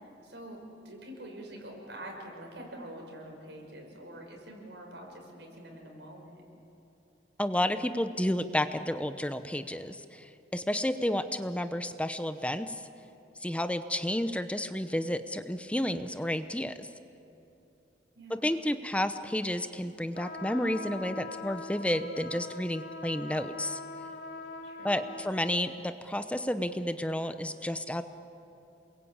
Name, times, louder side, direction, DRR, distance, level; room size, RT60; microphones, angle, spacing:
voice 1, 0.2-6.4 18.1-18.4 24.6-25.1, right 1 dB, 85° right, 1 dB, 6.0 m, -46 dB
voice 2, 7.4-12.8 13.4-16.9 18.3-23.8 24.8-28.0, left 1 dB, 5° left, 10 dB, 0.7 m, -31 dB
sound 1, 20.1-25.6, left 3 dB, 70° left, 2.9 m, -42 dB
28.5 x 21.5 x 8.8 m, 2.8 s
head